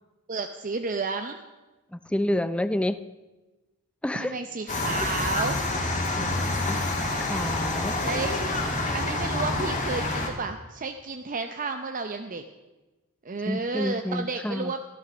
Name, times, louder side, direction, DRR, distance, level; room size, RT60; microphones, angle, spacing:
voice 1, 0.3-1.4 4.1-5.6 8.0-8.4 8.9-12.4 13.2-14.8, right 3 dB, 35° right, 6 dB, 0.7 m, -31 dB
voice 2, 1.9-3.0 4.0-4.3 6.2-6.8 7.2-8.0 13.5-14.7, left 1 dB, 5° left, 12 dB, 0.4 m, -29 dB
sound 1, 4.7-10.3, left 2 dB, 35° left, 2.4 m, -27 dB
14.0 x 12.0 x 6.1 m, 1.1 s
head